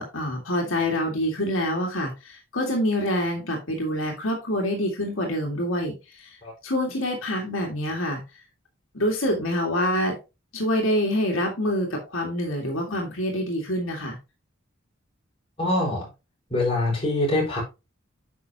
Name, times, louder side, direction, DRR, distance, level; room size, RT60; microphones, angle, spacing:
voice 1, 0.0-6.4 6.6-8.2 8.9-10.2 10.5-14.2, equal, 80° left, 2.1 m, -26 dB
voice 2, 15.6-16.1 16.5-17.6, left 1 dB, 30° left, 5.0 m, -24 dB
9.4 x 6.1 x 2.9 m
head